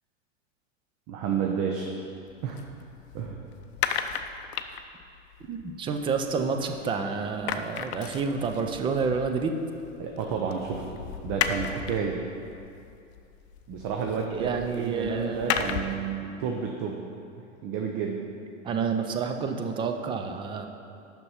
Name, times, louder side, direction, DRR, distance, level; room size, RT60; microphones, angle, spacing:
voice 1, 1.1-1.9 2.4-2.6 3.1-3.4 10.0-12.2 13.7-17.1 17.6-18.3, right 6 dB, 40° right, 1 dB, 0.8 m, -31 dB
sound 1, 2.3-6.9 7.2-16.1, left 8 dB, 55° left, 0.6 m, -35 dB
voice 2, 5.5-9.6 14.3-15.8 18.6-20.7, right 5 dB, 15° right, 5 dB, 0.4 m, -29 dB
6.8 x 6.0 x 5.6 m, 2.6 s
hypercardioid pair, 110°, 38 cm